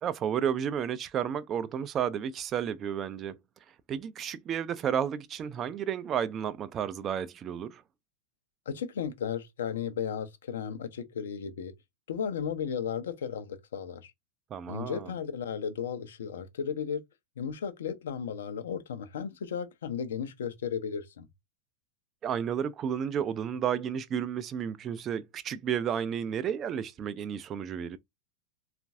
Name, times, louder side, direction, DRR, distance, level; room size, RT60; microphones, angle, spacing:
voice 1, 0.0-3.4 3.9-7.8 14.5-15.1 22.2-28.0, right 8 dB, 30° right, 0.4 m, -32 dB
voice 2, 8.7-11.7 12.1-14.1 14.7-17.0 17.4-21.3, left 7 dB, 60° left, 0.6 m, -34 dB
3.6 x 2.4 x 2.6 m
figure-of-eight pair, 90°, 0 cm